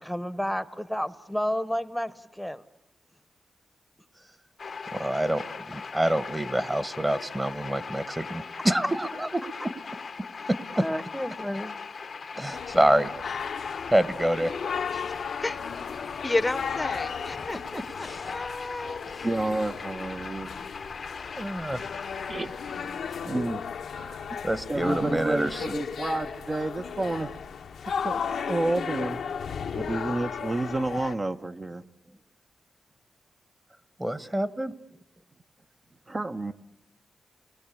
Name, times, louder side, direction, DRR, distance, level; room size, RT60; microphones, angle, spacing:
voice 1, 0.0-2.6 10.8-11.7, equal, ahead, 15 dB, 1.1 m, -31 dB
sound 1, 4.6-23.0, left 5 dB, 60° left, 0.9 m, -40 dB
voice 2, 4.9-9.7 10.5-10.9 12.3-13.4 13.9-14.5 14.9-15.2 17.5-18.4 19.1-19.3 21.4-21.8 24.0-25.6 34.0-34.7, right 1 dB, 15° right, 15 dB, 1.4 m, -27 dB
sound 2, 12.5-31.1, left 6 dB, 80° left, 1.0 m, -35 dB
voice 3, 15.4-15.8 16.2-19.0, left 2 dB, 25° left, 15 dB, 0.9 m, -32 dB
voice 4, 19.2-20.5 22.3-22.9 23.2-23.6 24.3-24.4 24.7-27.4 28.0-28.2 28.5-29.2 29.7-31.8 36.1-36.5, right 2 dB, 35° right, 5 dB, 1.0 m, -30 dB
29.5 x 20.5 x 8.4 m, 0.81 s
cardioid pair, 60°, 0 cm